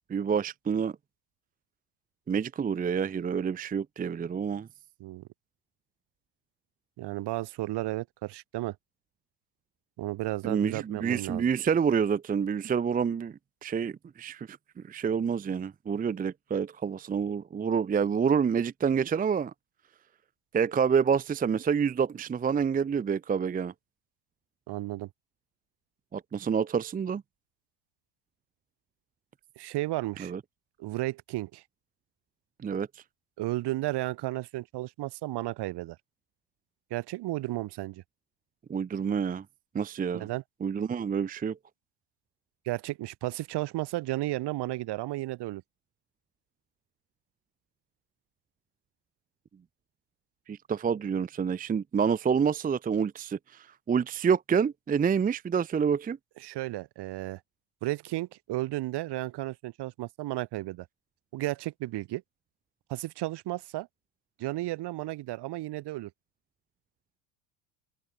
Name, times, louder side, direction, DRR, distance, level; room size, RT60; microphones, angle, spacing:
voice 1, 0.1-0.9 2.3-4.7 10.4-14.6 14.9-19.5 20.5-23.7 26.1-27.2 30.2-30.4 32.6-32.9 38.7-39.4 39.7-40.3 40.6-41.6 50.5-56.2, right 6 dB, 15° right, 0.7 m, -28 dB
voice 2, 7.0-8.8 10.0-11.5 24.7-25.1 29.6-30.3 30.8-31.6 33.4-36.0 36.9-38.0 40.1-40.4 42.7-45.6 56.4-57.4 57.8-60.9 61.3-62.2 62.9-63.9 64.4-66.1, right 17 dB, 55° right, 2.2 m, -33 dB
supercardioid pair, 105°, 49 cm